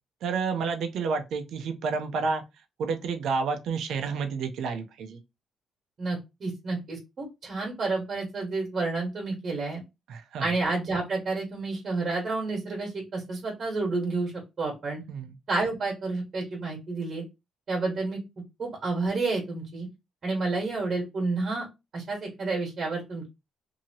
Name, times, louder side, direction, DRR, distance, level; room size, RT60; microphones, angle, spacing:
voice 1, 0.2-2.4 2.8-5.2 10.1-10.5 15.1-15.3, right 5 dB, 75° right, 0.6 m, -30 dB
voice 2, 6.0-9.8 10.4-14.3 14.6-15.0 15.5-17.2 17.7-18.2 18.6-19.9 20.2-21.7 21.9-23.3, right 3 dB, 50° right, 1.4 m, -30 dB
2.7 x 2.7 x 2.8 m
cardioid pair, 90°, 0 cm